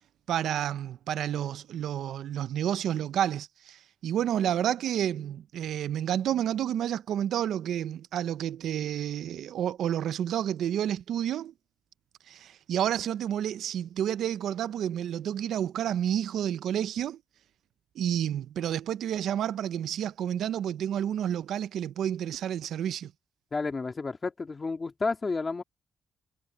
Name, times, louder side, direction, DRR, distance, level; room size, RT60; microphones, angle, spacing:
voice 1, 0.3-11.5 12.3-17.2 18.0-23.1, right 10 dB, 80° right, 0.6 m, -30 dB
voice 2, 23.5-25.6, left 4 dB, 25° left, 2.1 m, -31 dB
cardioid pair, 150°, 0 cm